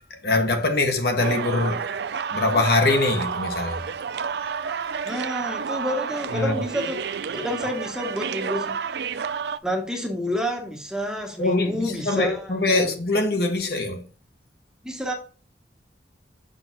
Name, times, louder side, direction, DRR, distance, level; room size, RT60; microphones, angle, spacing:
voice 1, 0.1-1.8 2.3-3.8 6.3-6.6 11.4-14.0, left 2 dB, 60° left, 1.3 m, -23 dB
sound 1, 1.2-9.6, right 6 dB, 65° right, 0.4 m, -30 dB
voice 2, 5.0-7.0 7.3-8.8 9.6-12.9 14.8-15.1, equal, 5° right, 1.2 m, -29 dB
6.8 x 6.1 x 4.0 m
head